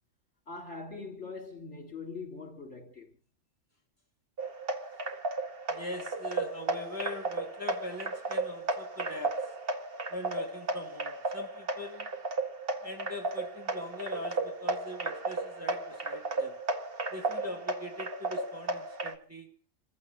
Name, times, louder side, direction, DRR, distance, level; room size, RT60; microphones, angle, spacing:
voice 1, 0.5-3.2, left 4 dB, 60° left, 3.7 m, -42 dB
sound 1, 4.4-19.1, right 2 dB, 45° right, 1.8 m, -34 dB
voice 2, 5.7-9.6 10.1-12.1 12.8-16.6 17.1-19.6, left 1 dB, 10° right, 2.5 m, -42 dB
28.5 x 15.0 x 2.7 m
omnidirectional pair, 1.3 m